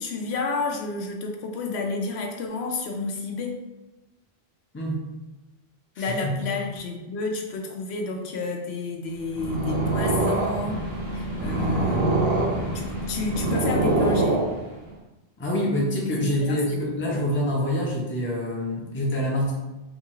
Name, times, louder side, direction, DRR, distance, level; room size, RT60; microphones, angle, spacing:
voice 1, 0.0-3.6 6.0-10.8 11.1-12.0 12.7-14.4 16.2-16.6 17.1-17.2, left 3 dB, 90° left, 2 dB, 0.9 m, -30 dB
voice 2, 6.0-6.5 15.4-19.5, left 1 dB, 15° left, -2 dB, 0.5 m, -26 dB
Purr, 9.2-14.9, right 2 dB, 70° right, 1.1 m, -24 dB
3.6 x 2.4 x 3.0 m, 1.1 s
omnidirectional pair, 1.1 m